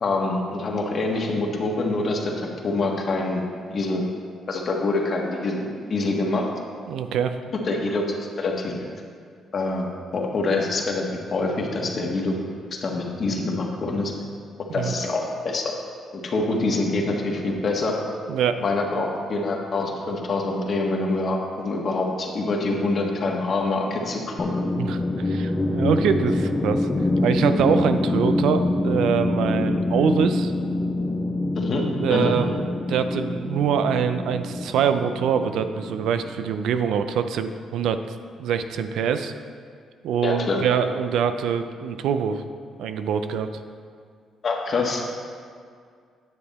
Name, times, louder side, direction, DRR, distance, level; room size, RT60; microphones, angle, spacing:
voice 1, 0.0-3.4 3.7-4.0 4.5-5.5 5.9-6.5 7.6-8.1 8.4-8.7 9.5-12.4 12.8-14.1 14.7-15.7 16.1-18.0 18.6-24.6 31.5-31.8 32.1-32.3 40.2-40.6 44.4-45.0, left 3 dB, 50° left, 0 dB, 1.5 m, -25 dB
voice 2, 6.9-7.4 14.7-14.9 18.3-18.6 24.8-26.9 27.2-30.5 32.0-38.0 38.4-39.3 40.0-42.4 42.8-43.5, right 7 dB, 80° right, 9 dB, 0.5 m, -24 dB
sound 1, 24.4-36.5, left 2 dB, 25° left, 0.6 m, -25 dB
9.9 x 6.7 x 4.2 m, 2.1 s
cardioid pair, 90°, 0 cm